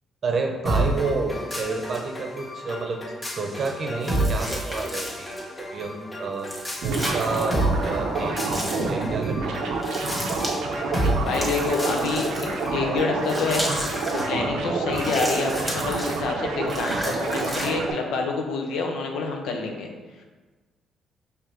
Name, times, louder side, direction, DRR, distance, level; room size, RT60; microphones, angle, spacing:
voice 1, 0.2-9.6 14.3-14.6, right 3 dB, 50° right, 3 dB, 0.7 m, -30 dB
cgi tropical paradise loop, 0.7-14.4, right 1 dB, 30° left, 1.4 m, -30 dB
sound 1, 4.0-5.3 6.4-7.5 8.5-8.9 9.8-10.6 11.3-12.7 13.2-14.3 14.9-16.2 16.7-17.7, equal, ahead, 1.4 m, -34 dB
sound 2, 6.8-17.9, right 3 dB, 85° right, 0.6 m, -28 dB
voice 2, 11.2-13.6 14.1-19.9, left 4 dB, 85° left, 2 dB, 0.6 m, -27 dB
4.8 x 3.2 x 3.0 m, 1.3 s
cardioid pair, 90°, 0 cm